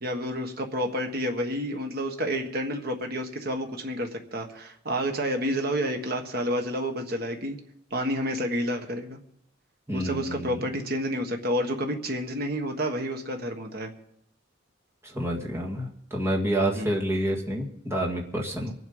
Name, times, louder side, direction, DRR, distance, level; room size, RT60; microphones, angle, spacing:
voice 1, 0.0-7.6 7.9-9.2 9.9-13.9 16.7-16.9, equal, 55° right, 4 dB, 1.5 m, -29 dB
voice 2, 9.9-10.6 15.0-18.7, right 1 dB, 15° right, -1 dB, 1.9 m, -28 dB
23.5 x 8.0 x 5.5 m, 0.74 s
head